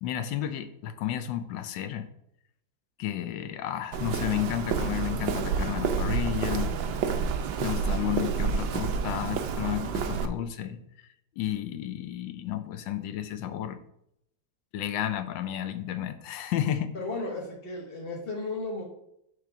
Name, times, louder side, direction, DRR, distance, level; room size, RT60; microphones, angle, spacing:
voice 1, 0.0-2.1 3.0-6.8 7.6-10.8 11.4-13.8 14.7-16.9, left 11 dB, 80° left, 10 dB, 1.3 m, -32 dB
Walk footsteps, 3.9-10.3, right 6 dB, 80° right, 1.4 m, -29 dB
voice 2, 16.9-18.8, left 2 dB, 35° left, -2 dB, 1.1 m, -34 dB
6.6 x 3.1 x 5.9 m, 0.77 s
omnidirectional pair, 2.0 m